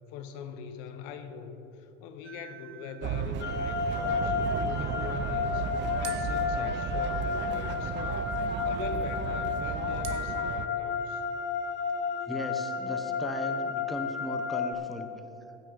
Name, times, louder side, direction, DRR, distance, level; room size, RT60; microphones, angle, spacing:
voice 1, 0.1-5.7 6.0-11.2, left 6 dB, 65° left, 8 dB, 1.2 m, -42 dB
sound 1, 2.2-3.7 6.0-7.7 10.0-11.1, right 10 dB, 90° right, 1.2 m, -47 dB
sound 2, 3.0-10.7, right 9 dB, 30° right, 0.5 m, -34 dB
sound 3, 3.4-14.7, left 5 dB, 30° left, 1.2 m, -32 dB
voice 2, 12.3-15.1, left 1 dB, ahead, 5 dB, 1.1 m, -37 dB
15.5 x 8.8 x 4.1 m, 2.8 s
hypercardioid pair, 100°, 36 cm